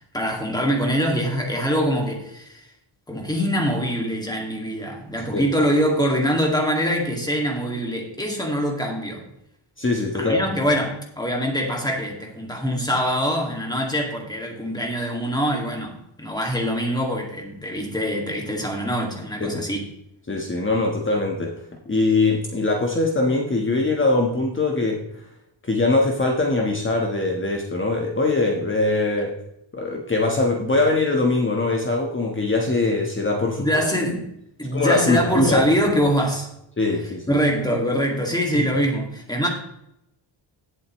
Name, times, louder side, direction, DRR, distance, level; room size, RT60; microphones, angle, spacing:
voice 1, 0.1-2.7 3.1-9.2 10.2-19.9 33.6-34.3 34.6-36.5 37.3-39.5, equal, 10° left, 1 dB, 2.3 m, -24 dB
voice 2, 9.8-10.4 19.4-19.6 20.3-21.5 21.8-25.0 25.6-29.3 29.7-33.7 34.7-35.6 36.8-37.4 38.5-38.6, left 2 dB, 25° left, 0 dB, 1.4 m, -22 dB
16.0 x 8.2 x 3.2 m, 0.80 s
wide cardioid pair, 160°, 47 cm